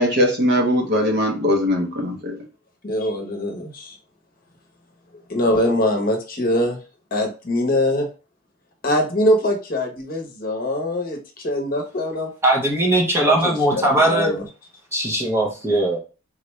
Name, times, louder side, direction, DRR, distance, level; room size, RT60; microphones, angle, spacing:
voice 1, 0.0-2.4, equal, 50° right, 0.8 m, -20 dB
voice 2, 2.8-4.0 5.3-6.8 7.1-8.1 8.8-12.3 13.2-14.4, left 1 dB, 45° left, 0.8 m, -23 dB
voice 3, 12.4-14.3 14.9-16.0, right 1 dB, 10° right, 0.5 m, -19 dB
3.8 x 2.2 x 3.0 m
head